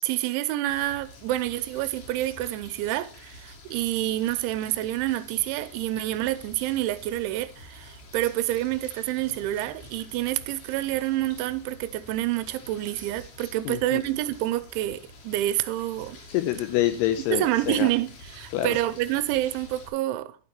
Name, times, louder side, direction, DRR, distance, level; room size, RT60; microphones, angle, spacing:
voice 1, 0.0-16.2 17.3-20.4, right 15 dB, 85° right, 2.9 m, -28 dB
sound 1, 0.7-19.9, left 2 dB, 45° left, 4.2 m, -48 dB
voice 2, 13.7-14.0 16.3-17.9 18.5-18.8, left 13 dB, 90° left, 2.4 m, -26 dB
11.5 x 9.4 x 2.9 m
omnidirectional pair, 5.5 m